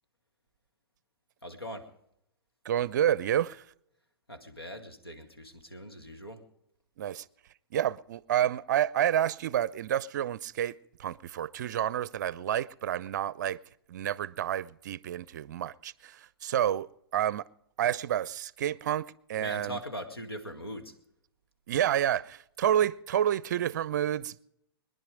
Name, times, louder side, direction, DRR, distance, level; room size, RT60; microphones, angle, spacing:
voice 1, 1.4-1.9 4.3-6.4 19.4-20.9, equal, 85° left, 2.1 m, -41 dB
voice 2, 2.6-3.6 7.0-7.3 7.7-10.7 11.0-13.6 13.9-17.4 17.8-19.8 21.7-24.4, right 10 dB, 50° right, 0.5 m, -29 dB
23.0 x 10.5 x 5.1 m
figure-of-eight pair, 110°, 12 cm